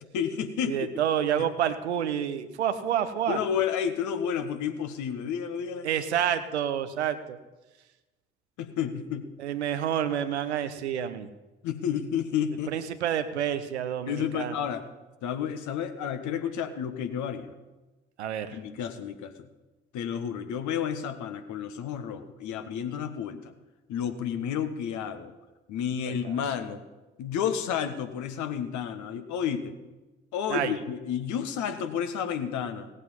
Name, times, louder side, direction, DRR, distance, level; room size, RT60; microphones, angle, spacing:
voice 1, 0.1-0.9 1.4-1.5 3.3-5.9 8.6-9.3 11.6-12.7 14.1-14.8 15.2-17.5 18.5-19.3 19.9-23.5 23.9-25.3 25.7-26.8 27.2-29.8 30.3-32.9, left 8 dB, 60° left, 8 dB, 1.3 m, -31 dB
voice 2, 0.7-3.4 5.8-7.4 9.4-11.3 12.7-14.5 18.2-18.6 26.1-26.4 30.5-30.7, right 9 dB, 85° right, 11 dB, 0.7 m, -29 dB
17.5 x 8.1 x 5.6 m, 1.1 s
figure-of-eight pair, 45°, 33 cm